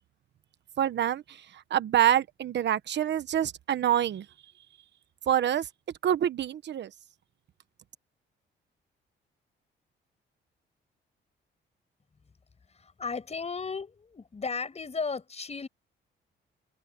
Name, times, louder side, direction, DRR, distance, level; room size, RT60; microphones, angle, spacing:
voice 1, 0.8-1.4 1.7-4.2 5.3-5.7 6.0-6.9, right 10 dB, 60° right, 1.1 m, -26 dB
voice 2, 12.7-15.7, left 4 dB, 35° left, 5.9 m, -35 dB
cardioid pair, 90°, 20 cm